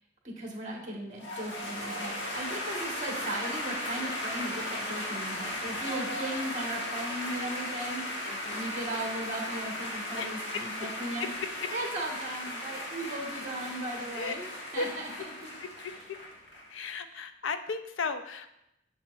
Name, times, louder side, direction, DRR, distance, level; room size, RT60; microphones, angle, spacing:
voice 1, 0.2-11.3 11.7-14.4 14.7-15.1 15.4-15.5, right 1 dB, 35° right, -1 dB, 1.6 m, -37 dB
sound 1, 1.2-16.7, left 1 dB, 65° left, 1.3 m, -36 dB
voice 2, 8.2-8.7 10.2-10.4 14.1-14.3 14.7-14.9 16.7-18.5, left 4 dB, 85° left, 9 dB, 0.5 m, -35 dB
7.5 x 7.3 x 2.6 m, 0.85 s
head